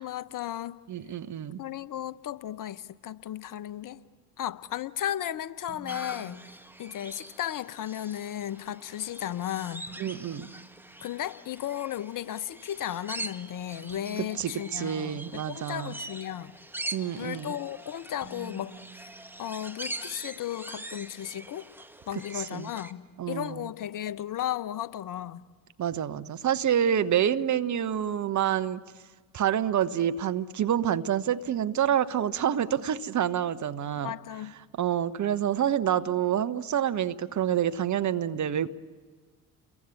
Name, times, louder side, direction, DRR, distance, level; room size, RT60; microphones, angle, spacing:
voice 1, 0.0-0.8 1.6-4.0 4.4-6.4 6.8-9.8 11.0-16.5 17.2-19.1 19.4-21.6 22.1-25.4 34.0-34.5, left 11 dB, 45° left, 16 dB, 1.0 m, -35 dB
voice 2, 0.9-1.6 10.0-10.5 14.4-15.9 16.9-17.5 22.3-22.7 23.2-23.7 25.8-28.8 29.3-34.1 34.8-38.7, right 9 dB, 40° right, 11 dB, 1.1 m, -27 dB
sound 1, 5.7-7.4 9.9-11.9 13.9-16.0 18.2-20.3, right 5 dB, 25° left, 6.9 m, -51 dB
sound 2, 5.9-22.9, right 2 dB, 5° right, 1.5 m, -43 dB
30.0 x 23.0 x 8.4 m, 1.5 s
figure-of-eight pair, 50°, 45 cm